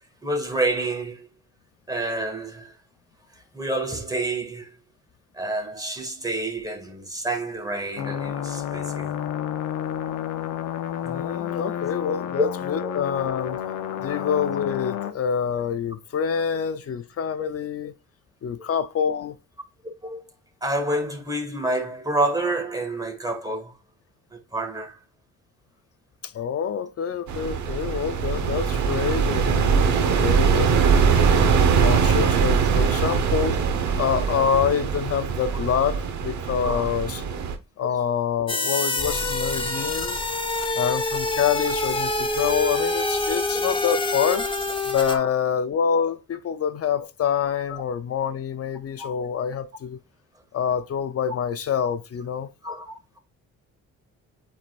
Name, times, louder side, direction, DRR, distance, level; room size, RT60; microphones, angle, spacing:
voice 1, 0.2-1.3 1.9-2.7 3.5-4.7 5.3-9.1 12.4-12.5 12.8-12.9 14.1-14.3 17.4-17.5 18.6-18.7 20.0-20.2 20.6-23.7 24.3-24.9 29.4-29.5 34.3-34.4 36.6-36.9 37.8-38.1 45.1-45.3 47.7-47.8 49.0-49.1 52.6-53.0, right 2 dB, 10° right, 2.2 m, -28 dB
sound 1, 8.0-15.1, left 10 dB, 85° left, 0.9 m, -30 dB
voice 2, 11.0-13.6 14.0-17.9 18.4-19.4 26.2-30.8 31.4-33.6 34.0-37.2 37.8-40.2 40.7-44.5 44.9-50.0 50.5-52.5, left 7 dB, 50° left, 0.8 m, -26 dB
sound 2, 27.3-37.5, right 6 dB, 70° right, 1.2 m, -22 dB
sound 3, 38.5-45.1, left 2 dB, 15° left, 1.1 m, -26 dB
8.7 x 4.4 x 2.5 m
cardioid pair, 90°, 30 cm